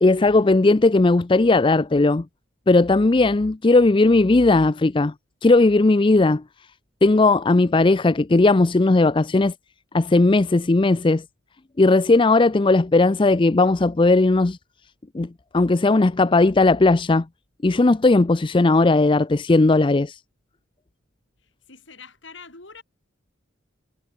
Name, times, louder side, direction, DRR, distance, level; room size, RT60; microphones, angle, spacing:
voice 1, 0.0-2.2 2.7-5.1 5.4-6.4 7.0-9.5 9.9-11.2 11.8-14.6 15.1-15.3 15.5-17.2 17.6-20.2, left 2 dB, 25° left, 0.4 m, -17 dB
voice 2, 21.4-22.8, left 4 dB, 65° left, 5.6 m, -45 dB
head